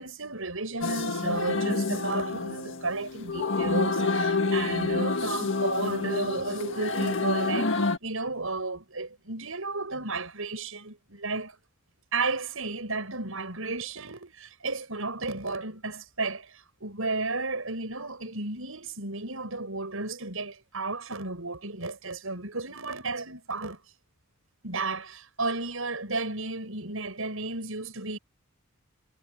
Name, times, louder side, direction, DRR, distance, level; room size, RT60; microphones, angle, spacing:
voice 1, 0.0-11.6 12.1-23.8 24.6-28.2, right 3 dB, 75° right, 6.6 m, -33 dB
sound 1, 0.8-8.0, left 3 dB, 60° left, 1.7 m, -28 dB
head